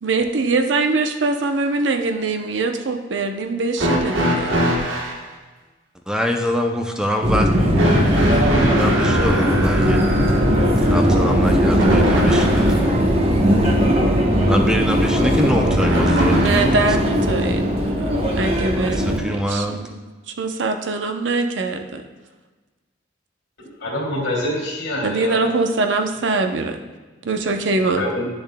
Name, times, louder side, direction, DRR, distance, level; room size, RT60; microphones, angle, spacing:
voice 1, 0.0-4.5 16.3-20.0 20.3-22.0 25.0-26.8 27.2-28.0, right 3 dB, 70° right, 6 dB, 0.6 m, -23 dB
sound 1, 3.8-5.2 7.7-12.8 15.8-16.9 18.1-18.2 19.2-19.3, right 1 dB, 85° right, 1.2 m, -23 dB
voice 2, 6.1-10.0 10.9-13.0 14.5-16.9 18.7-19.8, equal, 5° right, 2 dB, 0.5 m, -25 dB
Subway metro underground, 7.2-19.2, equal, 30° right, 0.9 m, -18 dB
voice 3, 23.6-25.5 27.9-28.3, left 1 dB, 90° left, -2 dB, 2.3 m, -26 dB
10.5 x 6.8 x 2.2 m, 1.3 s
head